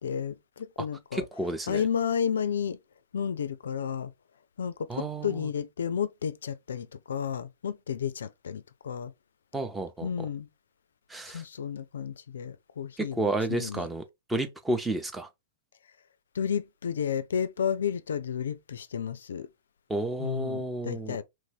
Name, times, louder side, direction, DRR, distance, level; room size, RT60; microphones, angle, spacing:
voice 1, 0.0-1.2 1.7-2.8 3.1-4.1 4.6-9.1 10.0-10.5 11.3-13.9 16.3-19.5 20.2-21.2, left 7 dB, 70° left, 0.3 m, -32 dB
voice 2, 1.1-1.8 4.9-5.5 9.5-10.3 11.1-11.4 13.0-14.0 14.3-15.3 19.9-21.2, right 2 dB, 10° right, 0.6 m, -31 dB
3.1 x 2.6 x 3.4 m
figure-of-eight pair, 105°, 0 cm